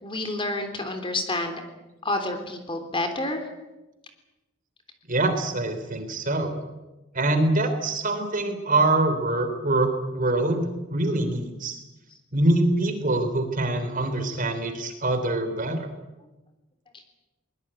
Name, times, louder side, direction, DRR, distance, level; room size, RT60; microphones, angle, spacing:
voice 1, 0.0-1.6 2.0-3.4, left 2 dB, 25° left, 7 dB, 3.4 m, -29 dB
voice 2, 5.1-6.6 7.1-11.8 12.3-15.9, right 2 dB, 40° right, 8 dB, 3.4 m, -24 dB
22.5 x 20.5 x 8.9 m, 1.0 s
head